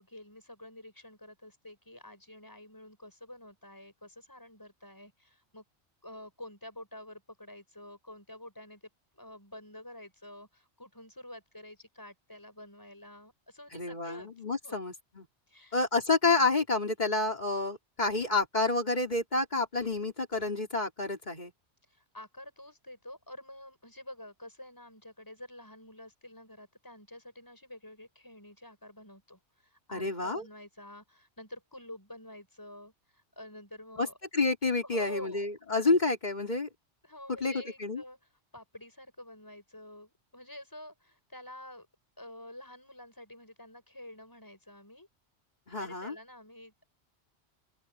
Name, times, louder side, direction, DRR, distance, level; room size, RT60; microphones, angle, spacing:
voice 1, 0.0-5.6 6.0-8.8 9.1-14.3 14.6-14.8 15.5-15.8 21.9-34.2 34.8-35.5 35.8-35.9 37.0-38.2 38.5-41.9 42.2-45.1 45.8-46.9, left 1 dB, 15° left, 7.2 m, -48 dB
voice 2, 13.7-15.2 15.7-21.5 29.9-30.4 34.0-34.1 34.3-36.7 37.4-37.5 37.8-38.0 45.7-46.1, left 3 dB, 40° left, 3.3 m, -29 dB
open air
omnidirectional pair, 1.2 m